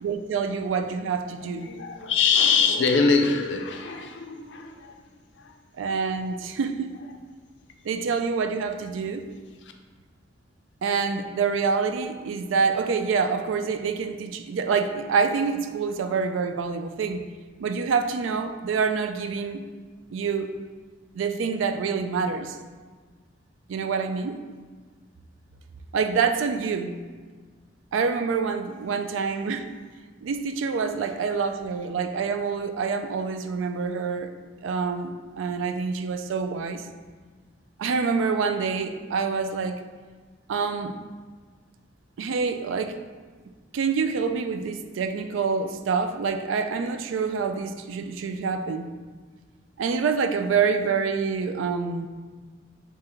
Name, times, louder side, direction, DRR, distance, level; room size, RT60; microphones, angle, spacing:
voice 1, 0.0-1.7 5.8-6.9 7.8-9.3 10.8-17.3 17.6-19.6 20.1-20.5 21.1-22.6 23.7-24.4 25.9-27.0 27.9-29.7 30.2-34.3 34.6-36.9 37.8-39.8 40.5-41.0 42.2-43.0 43.7-48.9 49.8-52.1, right 5 dB, 80° right, 8 dB, 0.3 m, -26 dB
voice 2, 1.2-5.0 5.4-5.5 9.6-9.7, left 5 dB, 65° left, 5 dB, 0.4 m, -24 dB
3.5 x 2.9 x 4.3 m, 1.5 s
head